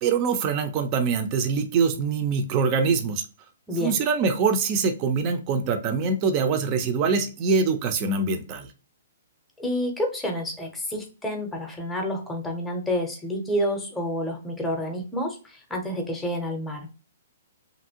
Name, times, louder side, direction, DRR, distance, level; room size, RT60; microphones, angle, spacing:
voice 1, 0.0-3.2 3.8-8.7, right 5 dB, 30° right, 7 dB, 0.5 m, -24 dB
voice 2, 3.7-4.0 9.6-16.9, equal, 5° left, 2 dB, 0.8 m, -29 dB
2.9 x 2.6 x 2.8 m, 0.34 s
hypercardioid pair, 155°, 0 cm